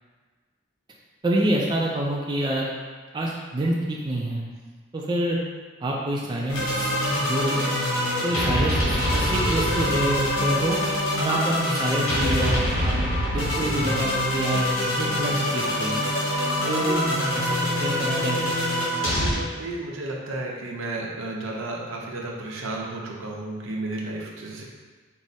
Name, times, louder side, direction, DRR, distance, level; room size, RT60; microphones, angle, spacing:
voice 1, 1.2-2.7 3.1-4.5 4.9-5.4 5.8-7.6 8.2-10.8 11.2-12.9 13.3-16.0 16.6-18.5, right 1 dB, 20° right, -3 dB, 0.3 m, -27 dB
sound 1, 6.5-19.3, left 1 dB, 85° left, 1.3 m, -24 dB
voice 2, 16.6-17.1 19.0-24.6, right 2 dB, 75° right, -2 dB, 0.7 m, -33 dB
4.7 x 2.0 x 4.1 m, 1.4 s
head